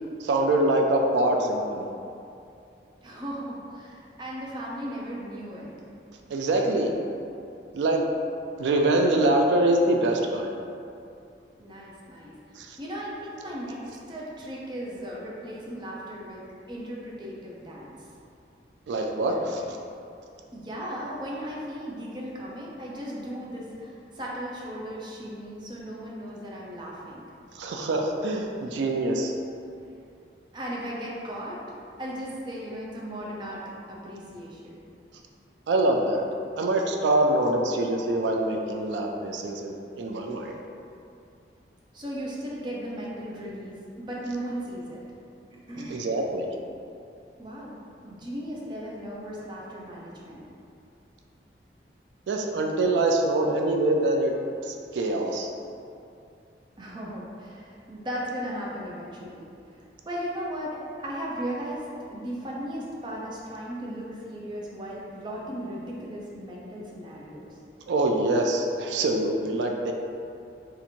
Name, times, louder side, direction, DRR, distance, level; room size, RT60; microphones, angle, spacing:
voice 1, 0.2-1.9 6.3-6.9 7.7-8.0 8.6-10.6 12.6-12.8 18.9-19.6 27.6-29.3 35.7-36.2 36.6-40.6 45.9-46.5 52.3-54.3 54.6-55.5 67.9-69.9, right 2 dB, 85° right, 2 dB, 0.3 m, -24 dB
voice 2, 3.0-5.7 11.6-12.4 12.8-16.4 16.7-18.0 19.5-19.6 20.5-27.2 30.5-33.6 33.9-34.7 41.9-45.0 45.7-46.1 47.4-50.4 56.8-59.5 60.1-61.9 62.1-67.5, equal, 25° right, -4 dB, 0.5 m, -36 dB
2.8 x 2.5 x 4.2 m, 2.6 s
head